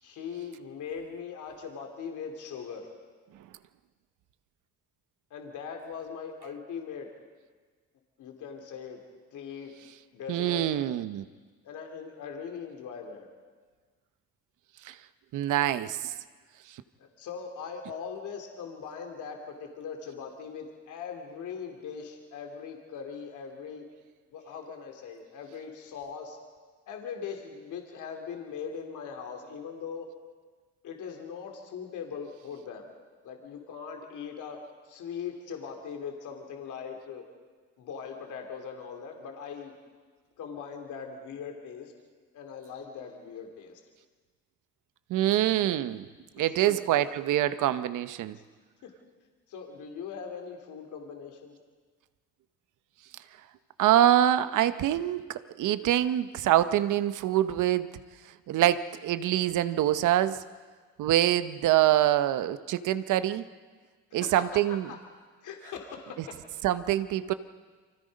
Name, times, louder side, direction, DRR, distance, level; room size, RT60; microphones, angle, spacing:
voice 1, 0.0-2.9 5.3-7.1 8.2-9.0 9.3-9.7 10.1-10.7 11.6-13.3 17.0-23.9 24.3-26.4 26.9-30.1 30.8-32.9 33.2-34.6 34.8-37.2 37.8-39.7 40.4-41.9 42.3-43.8 46.4-47.0 48.3-48.4 48.8-48.9 49.5-51.5 64.1-64.6 64.9-65.0 65.4-66.4, left 6 dB, 80° left, 2 dB, 3.1 m, -40 dB
voice 2, 10.3-11.2 14.8-14.9 15.3-16.1 45.1-46.1 46.4-48.4 53.8-58.0 58.5-60.4 61.0-63.4 64.1-64.9 66.6-67.3, right 12 dB, 85° right, 12 dB, 1.0 m, -25 dB
29.5 x 25.0 x 5.4 m, 1.5 s
cardioid pair, 90°, 30 cm